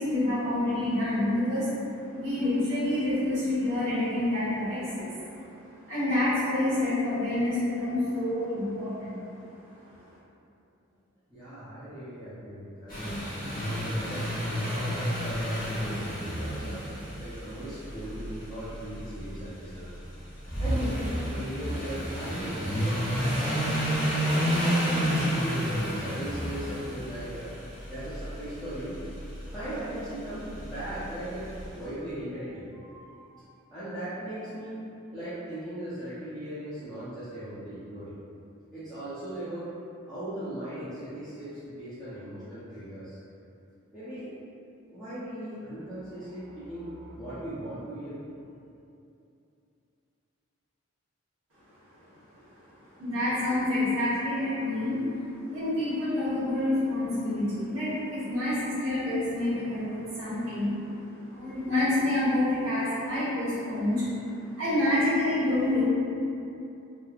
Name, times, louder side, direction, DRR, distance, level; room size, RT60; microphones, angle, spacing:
voice 1, 0.0-1.7 2.1-5.1 5.4-5.5 5.9-9.2 53.0-55.2 55.5-61.0 61.3-64.1 64.5-65.8, left 1 dB, 70° right, -15 dB, 1.0 m, -27 dB
voice 2, 11.3-13.1 13.6-16.8 17.2-19.9 20.6-23.0 23.3-24.0 24.6-27.5 27.9-29.0 29.5-34.8 35.1-38.1 38.7-39.7 40.1-43.2 43.9-44.3 44.9-48.1, right 1 dB, ahead, -17 dB, 0.5 m, -38 dB
sound 1, 12.9-31.7, equal, 40° left, 1.0 m, -31 dB
3.0 x 2.1 x 2.3 m, 2.7 s
head